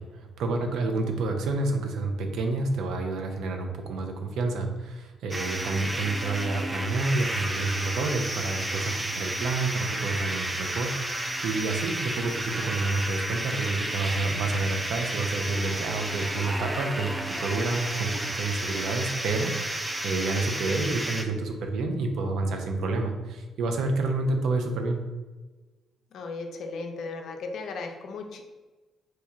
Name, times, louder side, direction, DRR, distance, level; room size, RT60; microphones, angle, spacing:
voice 1, 0.0-25.0, right 3 dB, 75° right, 4 dB, 0.5 m, -29 dB
sound 1, 5.3-21.2, right 1 dB, 15° right, 0.3 m, -32 dB
voice 2, 26.1-28.4, left 3 dB, 70° left, 4 dB, 0.4 m, -36 dB
3.0 x 2.2 x 3.6 m, 1.3 s
cardioid pair, 90°, 0 cm